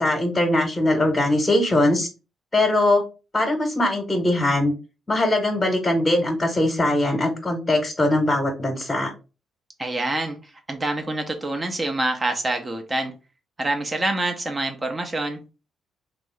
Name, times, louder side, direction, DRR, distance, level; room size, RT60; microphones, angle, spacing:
voice 1, 0.0-2.1 2.5-3.0 3.3-4.7 5.1-9.1, left 1 dB, 25° left, 1.0 m, -21 dB
voice 2, 9.8-10.4 10.7-13.1 13.6-15.4, right 2 dB, 30° right, 0.7 m, -26 dB
3.4 x 2.0 x 3.2 m
hypercardioid pair, 45°, 0 cm